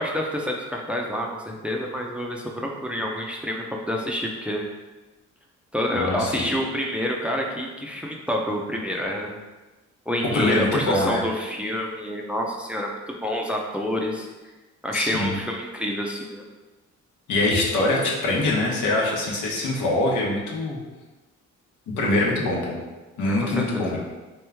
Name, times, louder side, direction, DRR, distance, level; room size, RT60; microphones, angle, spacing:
voice 1, 0.0-4.6 5.7-9.4 10.1-14.3 14.8-16.4 23.3-23.9, equal, 5° right, 0 dB, 0.5 m, -28 dB
voice 2, 5.9-6.4 10.3-11.2 14.9-15.3 17.3-20.8 22.0-22.8 23.2-24.0, left 2 dB, 85° left, -3 dB, 1.0 m, -23 dB
3.6 x 3.1 x 3.4 m, 1.2 s
cardioid pair, 90°, 30 cm